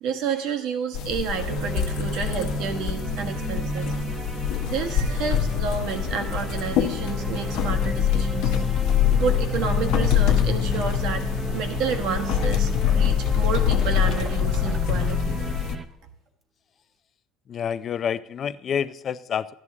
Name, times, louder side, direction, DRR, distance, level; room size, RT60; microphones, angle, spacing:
voice 1, 0.0-3.9 4.6-8.6 9.1-11.3 11.5-15.4, right 6 dB, 70° right, 5 dB, 1.3 m, -30 dB
sound 1, 0.9-15.8, left 9 dB, 70° left, 0.9 m, -24 dB
sound 2, 1.5-15.9, right 3 dB, 20° right, 0.6 m, -34 dB
sound 3, 4.6-15.6 16.3-16.4, right 3 dB, 40° right, 1.2 m, -45 dB
voice 2, 17.5-19.5, left 8 dB, 40° left, 15 dB, 0.4 m, -28 dB
13.0 x 11.0 x 3.6 m, 0.78 s
cardioid pair, 125°, 0 cm